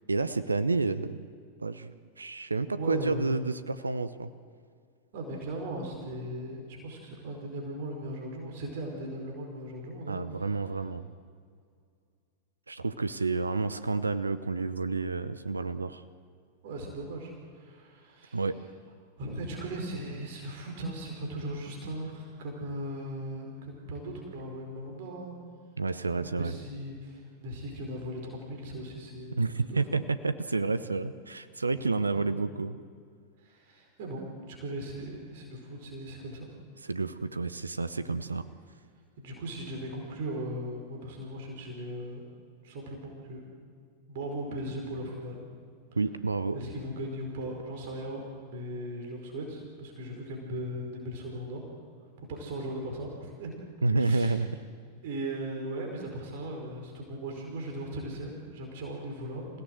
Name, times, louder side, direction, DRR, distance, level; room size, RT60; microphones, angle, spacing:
voice 1, 0.1-1.3 1.6-4.3 10.1-11.1 12.7-16.0 18.3-18.6 25.8-26.5 29.3-32.8 36.8-38.4 46.0-46.6 53.8-54.5, right 3 dB, 80° right, 14 dB, 0.8 m, -30 dB
voice 2, 2.7-3.5 5.1-10.2 16.6-18.4 19.2-25.4 26.2-30.1 31.8-32.4 33.4-36.5 39.2-42.2 42.6-43.4 44.1-45.4 46.5-51.6 52.2-53.5 53.9-54.4 55.0-59.6, right 1 dB, 55° right, 1 dB, 4.9 m, -38 dB
27.0 x 17.0 x 7.9 m, 2.2 s
figure-of-eight pair, 90°, 0 cm